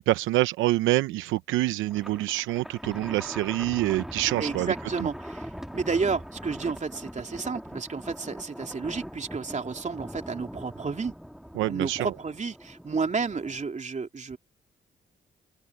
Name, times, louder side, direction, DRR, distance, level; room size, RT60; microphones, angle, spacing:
voice 1, 0.0-4.7 5.0-5.1 11.6-12.1, right 17 dB, 80° right, 0.8 m, -26 dB
Thunder, 1.9-13.6, equal, ahead, 2.5 m, -41 dB
voice 2, 4.4-11.1 11.7-14.4, right 4 dB, 35° right, 3.4 m, -31 dB
open air
hypercardioid pair, 50°, 20 cm